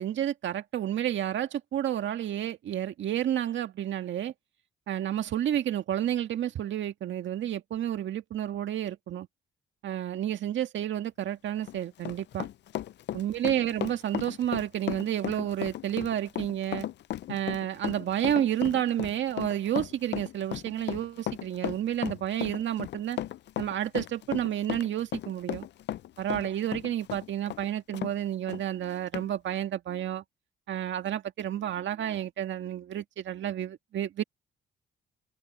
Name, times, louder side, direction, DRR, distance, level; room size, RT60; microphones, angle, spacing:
voice 1, 0.0-4.3 4.9-9.3 9.8-12.5 13.1-16.9 17.3-23.2 23.6-25.7 26.2-30.2 30.7-34.2, right 11 dB, 70° right, 1.9 m, -30 dB
Run, 11.5-28.1 28.5-28.6 29.1-29.3, left 12 dB, 65° left, 0.5 m, -36 dB
cardioid pair, 90°, 20 cm